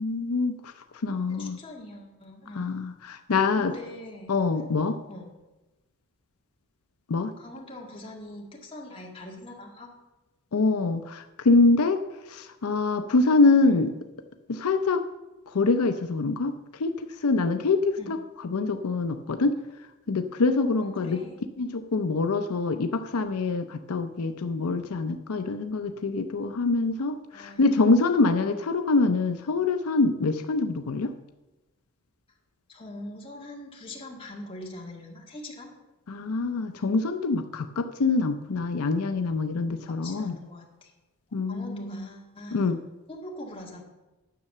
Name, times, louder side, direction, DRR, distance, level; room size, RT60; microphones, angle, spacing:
voice 1, 0.0-1.6 2.6-3.8 4.3-5.0 7.1-7.3 10.5-13.9 14.5-15.0 15.5-19.6 20.1-21.2 21.6-31.1 36.1-40.4 41.3-42.0 42.5-42.8, left 3 dB, 80° left, 8 dB, 0.5 m, -25 dB
voice 2, 1.3-2.8 3.6-4.3 5.1-5.3 7.4-9.9 13.6-13.8 18.0-18.1 20.8-21.4 27.3-27.9 28.5-28.6 32.7-35.7 39.9-40.9 41.5-42.7 43.1-43.8, left 1 dB, 25° left, -2 dB, 1.9 m, -42 dB
10.0 x 6.6 x 6.6 m, 1.1 s
head